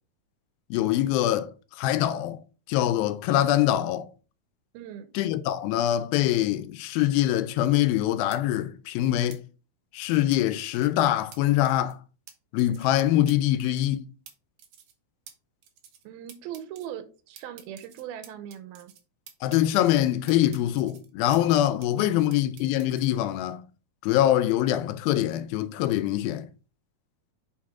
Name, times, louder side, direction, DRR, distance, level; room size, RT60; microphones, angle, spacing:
voice 1, 0.7-1.5 1.8-2.4 2.7-4.1 5.1-9.4 9.9-12.0 12.5-14.0 19.4-23.6 24.0-26.5, left 13 dB, 85° left, 2.3 m, -24 dB
voice 2, 4.7-5.1 16.0-18.9 21.9-22.3, right 10 dB, 85° right, 2.7 m, -40 dB
sound 1, 8.3-8.4 9.3-9.4 10.3-10.9 11.3-11.4 11.6-11.9 12.3-12.4 12.6-12.9 13.3-13.4 13.6-14.0 14.3-14.4 14.6-14.9 15.3-15.4 15.6-16.0 16.3-16.9 17.4-19.0 19.3-20.0 20.3-21.6 21.8-23.1, right 9 dB, 65° right, 1.9 m, -49 dB
7.6 x 4.4 x 3.6 m
omnidirectional pair, 4.3 m